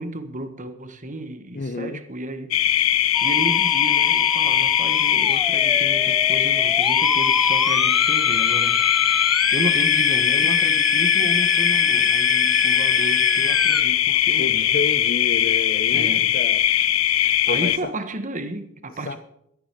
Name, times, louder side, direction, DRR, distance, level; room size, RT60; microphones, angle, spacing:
voice 1, 0.0-2.9 3.2-8.8 9.5-14.7 15.9-16.3 17.5-19.2, right 1 dB, 40° right, 1.5 m, -33 dB
voice 2, 1.5-2.0 14.4-16.6 17.1-17.9 18.9-19.2, left 3 dB, 45° left, 0.9 m, -30 dB
sound 1, 2.5-17.8, left 12 dB, 85° left, 0.7 m, -20 dB
Musical instrument, 3.1-13.8, equal, ahead, 0.8 m, -28 dB
13.0 x 11.5 x 6.7 m
head